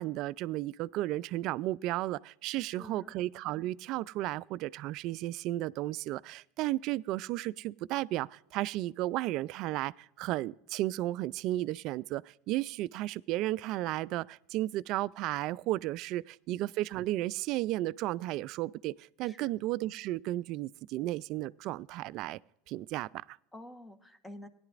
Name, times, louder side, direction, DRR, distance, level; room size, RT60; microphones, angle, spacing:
voice 1, 0.0-18.9 19.2-22.4 22.7-23.4, right 16 dB, 55° right, 0.3 m, -34 dB
voice 2, 2.5-3.1 19.2-19.5 23.5-24.5, left 1 dB, 10° left, 1.1 m, -49 dB
17.5 x 10.5 x 2.5 m
supercardioid pair, 110°, 0 cm